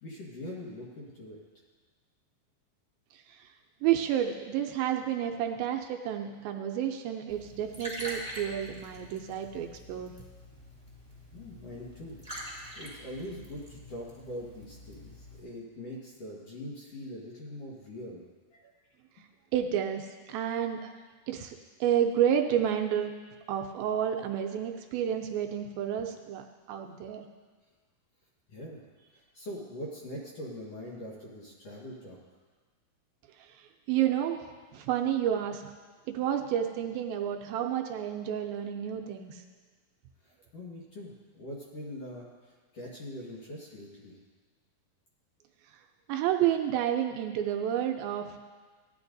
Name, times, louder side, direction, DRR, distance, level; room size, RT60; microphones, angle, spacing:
voice 1, 0.0-1.4 11.3-12.2 12.7-18.2 18.5-18.7 28.5-32.2 40.2-44.2, left 1 dB, 55° left, -4 dB, 2.0 m, -43 dB
voice 2, 3.1-3.5 3.8-10.1 19.5-20.9 21.3-23.1 23.5-27.2 33.4-34.4 34.7-35.6 36.1-39.4 46.1-48.4, right 10 dB, 80° right, 3 dB, 2.3 m, -30 dB
Liquid, 7.3-15.4, equal, ahead, 2.4 m, -45 dB
17.0 x 11.0 x 2.6 m, 1.4 s
omnidirectional pair, 4.4 m